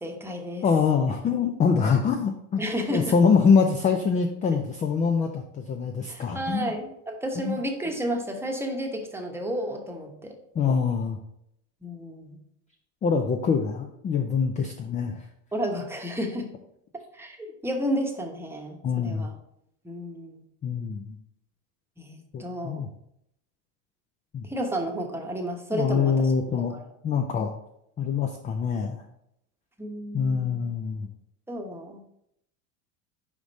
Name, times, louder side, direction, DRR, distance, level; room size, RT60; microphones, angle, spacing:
voice 1, 0.0-0.6 2.6-3.1 6.1-10.4 11.8-12.4 15.5-16.5 17.1-19.3 19.8-20.4 22.0-22.8 24.4-26.1 26.7-26.9 29.8-30.6 31.5-32.0, equal, 5° right, 2 dB, 1.0 m, -32 dB
voice 2, 0.6-2.6 2.9-6.7 7.4-7.6 10.6-11.2 13.0-15.3 18.8-19.3 20.6-21.2 22.3-22.9 24.3-24.5 25.7-26.8 27.0-27.5 28.0-29.0 30.1-31.1, left 5 dB, 20° left, 5 dB, 0.4 m, -24 dB
5.1 x 5.1 x 4.0 m, 0.77 s
supercardioid pair, 105°, 42 cm